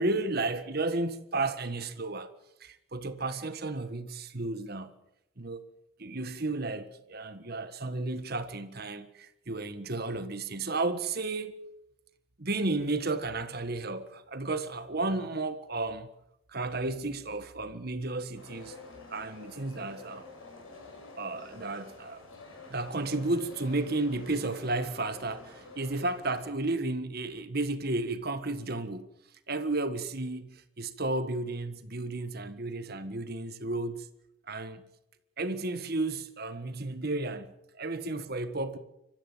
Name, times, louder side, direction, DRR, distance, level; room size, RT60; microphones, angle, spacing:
voice 1, 0.0-2.3 2.6-4.9 5.4-5.6 6.0-11.5 12.4-16.1 16.5-18.7 19.1-20.3 21.1-22.2 22.7-29.1 29.5-34.1 34.5-34.8 35.4-38.8, right 2 dB, 50° right, 1.6 m, -33 dB
sound 1, 18.3-26.5, left 3 dB, 85° left, 6.6 m, -49 dB
25.0 x 14.5 x 7.4 m
head